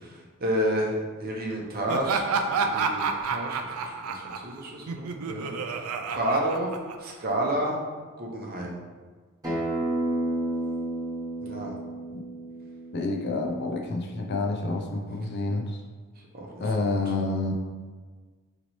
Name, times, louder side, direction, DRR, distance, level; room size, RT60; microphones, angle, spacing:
voice 1, 0.0-5.5 6.1-6.7 7.0-7.8 8.2-8.8 11.4-11.7 16.3-16.6, right 1 dB, 45° right, -1 dB, 0.7 m, -30 dB
Laughter, 1.9-7.3, right 5 dB, 80° right, 0.3 m, -30 dB
Acoustic guitar, 9.4-14.6, right 1 dB, 15° right, 1.3 m, -32 dB
voice 2, 12.9-15.8 16.6-17.5, left 2 dB, 50° left, 2 dB, 0.5 m, -28 dB
4.1 x 3.0 x 3.0 m, 1.4 s
head